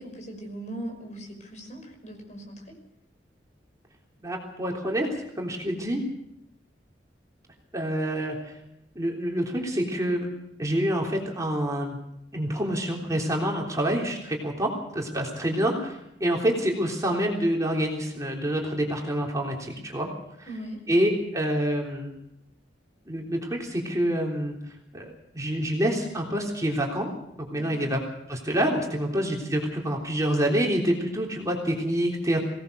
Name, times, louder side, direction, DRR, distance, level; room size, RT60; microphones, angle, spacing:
voice 1, 0.0-2.7 20.5-20.8 27.6-27.8, right 1 dB, 40° left, 3 dB, 5.7 m, -39 dB
voice 2, 4.2-6.0 7.7-8.5 9.0-10.3 10.6-12.0 12.3-20.1 20.4-20.5 20.9-22.1 23.1-24.6 24.9-27.1 27.4-28.0 28.3-32.4, equal, 20° right, -1 dB, 3.5 m, -27 dB
23.0 x 18.0 x 6.7 m, 0.80 s
head